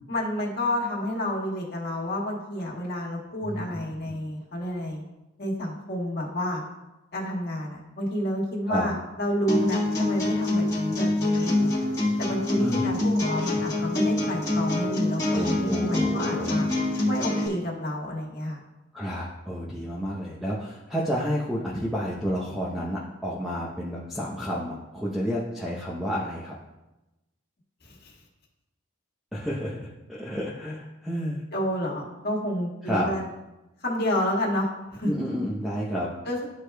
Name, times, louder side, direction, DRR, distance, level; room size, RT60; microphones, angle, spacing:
voice 1, 0.1-5.0 5.4-6.6 7.1-11.7 12.2-16.7 17.1-18.6 27.8-28.1 31.5-33.2 33.8-35.1 36.2-36.5, equal, 50° left, -4 dB, 1.7 m, -30 dB
voice 2, 3.4-4.2 8.7-8.9 12.6-12.9 15.3-16.7 18.9-26.6 29.3-31.4 32.8-33.1 35.0-36.1, equal, ahead, -6 dB, 0.8 m, -30 dB
sound 1, 9.5-17.5, left 2 dB, 15° left, 1.6 m, -25 dB
12.0 x 4.8 x 2.3 m, 1.0 s
head